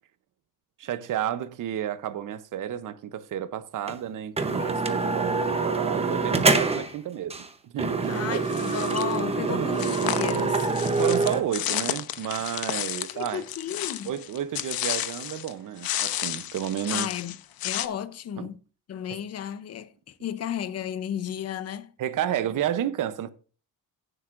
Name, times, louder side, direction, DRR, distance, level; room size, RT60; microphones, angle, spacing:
voice 1, 0.8-8.4 9.5-9.7 10.3-10.4 10.8-13.4 14.1-17.1 18.4-18.5 19.1-19.2 22.0-23.3, right 10 dB, 55° right, 0.8 m, -31 dB
sound 1, 3.9-4.0 4.4-6.9 7.3-7.5 7.8-11.4, right 4 dB, 15° right, 0.8 m, -25 dB
voice 2, 8.1-10.7 13.1-14.1 16.9-17.4 17.6-18.6 18.9-21.9, left 9 dB, 40° left, 0.7 m, -33 dB
sound 2, 8.5-9.2 9.7-15.5 15.8-17.9, left 12 dB, 65° left, 0.8 m, -32 dB
15.5 x 7.9 x 2.6 m
cardioid pair, 175°, 39 cm